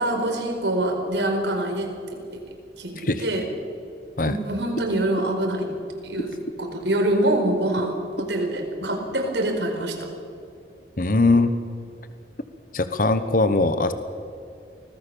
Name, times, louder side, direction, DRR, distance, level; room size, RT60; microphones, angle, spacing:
voice 1, 0.0-1.9 2.3-2.4 2.8-2.9 3.2-3.4 4.2-5.7 6.0-10.1, right 1 dB, 85° right, 3 dB, 4.7 m, -25 dB
voice 2, 3.0-3.3 4.2-4.4 11.0-11.5 12.7-13.9, left 2 dB, 50° left, 10 dB, 1.2 m, -20 dB
25.5 x 19.0 x 7.1 m, 2.5 s
head